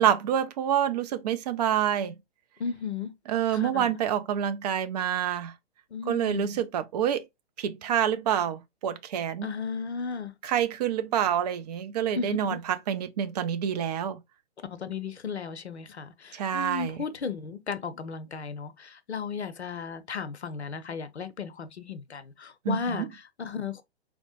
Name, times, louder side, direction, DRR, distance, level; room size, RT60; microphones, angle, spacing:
voice 1, 0.0-2.1 3.3-5.5 6.1-7.2 7.6-9.5 10.4-14.2 16.3-17.0 22.6-23.1, right 9 dB, 40° right, 0.4 m, -27 dB
voice 2, 2.6-3.1 3.5-3.9 5.9-6.6 9.4-10.3 12.2-12.6 14.7-23.8, left 5 dB, 85° left, 0.6 m, -35 dB
4.1 x 2.1 x 2.8 m
figure-of-eight pair, 115°, 32 cm